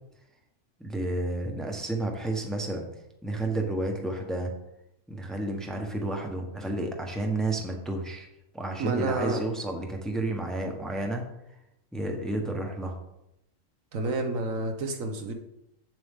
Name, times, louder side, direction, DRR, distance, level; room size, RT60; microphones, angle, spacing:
voice 1, 0.8-2.9 3.2-4.5 5.1-8.3 8.5-11.3 11.9-13.0, right 2 dB, ahead, 2 dB, 1.0 m, -31 dB
voice 2, 8.8-9.4 13.9-15.3, right 3 dB, 85° right, 5 dB, 1.4 m, -29 dB
7.9 x 7.4 x 3.7 m, 0.82 s
omnidirectional pair, 1.3 m